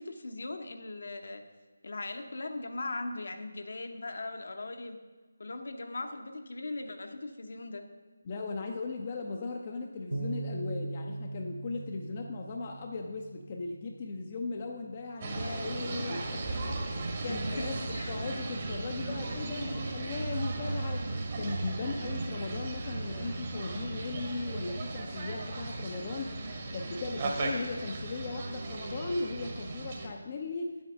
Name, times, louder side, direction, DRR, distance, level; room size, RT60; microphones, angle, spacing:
voice 1, 0.0-1.4 1.8-5.0 5.4-7.9 17.2-18.2, left 2 dB, 55° left, 6 dB, 0.9 m, -39 dB
voice 2, 8.2-26.4 26.7-30.7, left 3 dB, 30° left, 2 dB, 0.6 m, -38 dB
Bass guitar, 10.1-16.4, right 2 dB, 80° right, 1.1 m, -41 dB
sound 1, 15.2-30.1, right 2 dB, 30° right, 1.3 m, -36 dB
9.1 x 7.9 x 5.3 m, 1.3 s
figure-of-eight pair, 155°, 0 cm